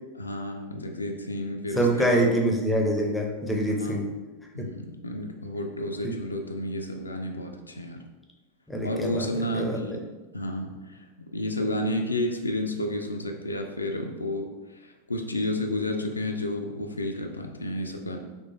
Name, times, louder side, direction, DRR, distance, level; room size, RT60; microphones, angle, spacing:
voice 1, 0.1-2.3 3.7-4.2 4.5-8.0 8.8-10.1 10.3-18.2, left 1 dB, 80° left, 3 dB, 0.3 m, -31 dB
voice 2, 1.8-4.1 6.0-6.2 8.7-9.3 9.5-10.0, right 1 dB, 5° left, 1 dB, 0.5 m, -25 dB
3.7 x 3.1 x 2.5 m, 1.2 s
figure-of-eight pair, 90°, 0 cm